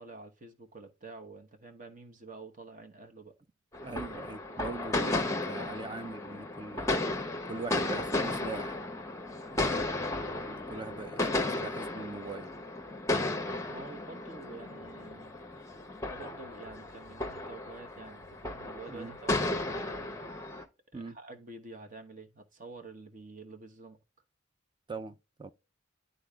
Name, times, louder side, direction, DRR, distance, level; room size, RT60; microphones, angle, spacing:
voice 1, 0.0-3.4 9.5-9.9 11.4-11.6 13.6-15.3 16.0-20.3 20.9-24.0, right 3 dB, 40° right, 1.0 m, -48 dB
sound 1, 3.7-20.6, left 2 dB, 15° left, 0.8 m, -34 dB
voice 2, 3.8-6.9 7.5-8.8 10.5-12.5 18.9-19.1 19.4-19.6 20.9-21.2 24.9-25.5, right 3 dB, 25° right, 0.4 m, -41 dB
11.5 x 4.0 x 2.3 m
head